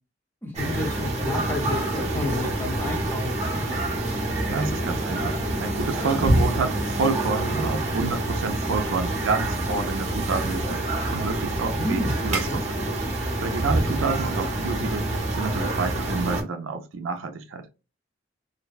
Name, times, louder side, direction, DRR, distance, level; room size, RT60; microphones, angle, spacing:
voice 1, 0.4-3.6 11.8-12.6, left 1 dB, 10° left, 0.7 m, -31 dB
sound 1, 0.5-16.4, right 1 dB, 35° right, 0.7 m, -26 dB
voice 2, 4.5-10.8 11.1-12.8 13.4-15.1 15.4-17.7, right 4 dB, 80° right, 0.5 m, -29 dB
2.6 x 2.1 x 2.3 m
head